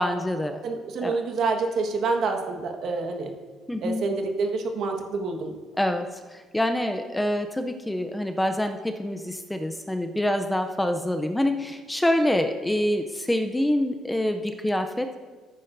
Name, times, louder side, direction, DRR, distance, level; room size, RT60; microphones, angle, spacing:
voice 1, 0.0-0.6 1.0-1.2 3.7-4.0 5.8-15.2, left 1 dB, 5° left, 6 dB, 0.5 m, -26 dB
voice 2, 0.6-3.3 3.8-5.6, right 4 dB, 55° right, 3 dB, 1.4 m, -27 dB
14.0 x 9.5 x 2.6 m, 1.4 s
cardioid pair, 135°, 0 cm